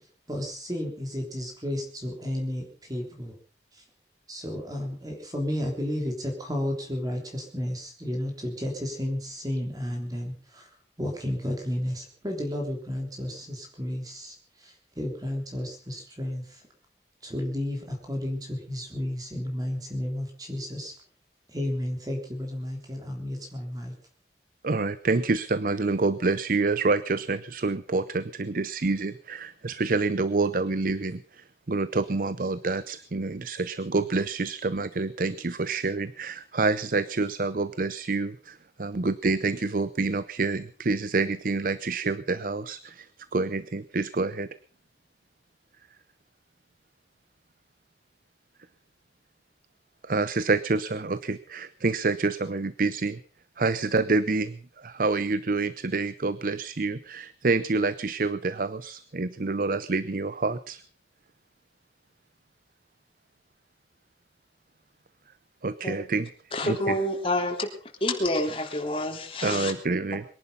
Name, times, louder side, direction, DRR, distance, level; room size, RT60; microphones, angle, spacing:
voice 1, 0.3-3.4 3.7-3.8 4.3-10.7 11.0-16.6 17.2-20.9 21.5-23.9, left 1 dB, 20° right, 1 dB, 3.4 m, -32 dB
voice 2, 24.6-31.2 31.7-43.0 43.3-44.5 50.1-53.2 53.6-54.6 54.8-60.8 65.6-66.3 66.6-67.0 69.4-70.2, right 3 dB, 50° right, 16 dB, 0.6 m, -27 dB
voice 3, 66.5-67.7 68.0-69.7, left 1 dB, 30° left, 2 dB, 3.4 m, -28 dB
22.5 x 11.0 x 5.6 m, 0.43 s
head